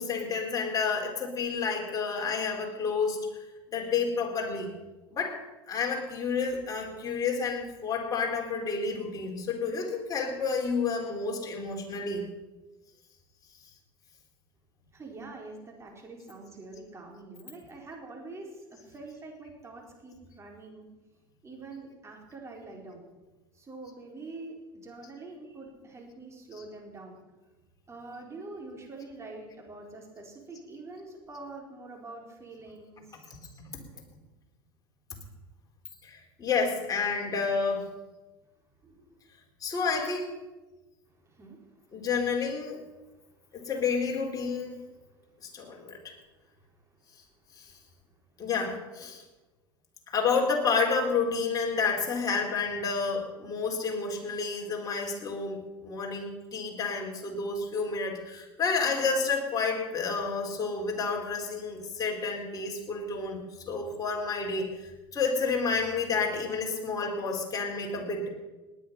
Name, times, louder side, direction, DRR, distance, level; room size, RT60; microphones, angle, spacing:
voice 1, 0.0-3.4 3.7-4.7 5.1-5.4 5.7-12.3 26.5-26.6 33.7-33.8 36.0-37.9 39.6-40.3 41.9-42.8 43.5-44.8 45.4-46.1 47.6-47.7 48.4-49.2 50.1-68.3, left 4 dB, 30° left, 1 dB, 4.0 m, -30 dB
voice 2, 14.9-20.9 21.4-23.0 23.5-24.6 24.8-27.2 27.9-33.3 38.8-39.2 41.1-42.0 43.0-43.2 43.4-43.7 45.5-45.8 46.1-47.0, right 3 dB, 25° right, 0 dB, 4.4 m, -45 dB
19.0 x 9.9 x 5.7 m, 1.2 s
hypercardioid pair, 90°, 12 cm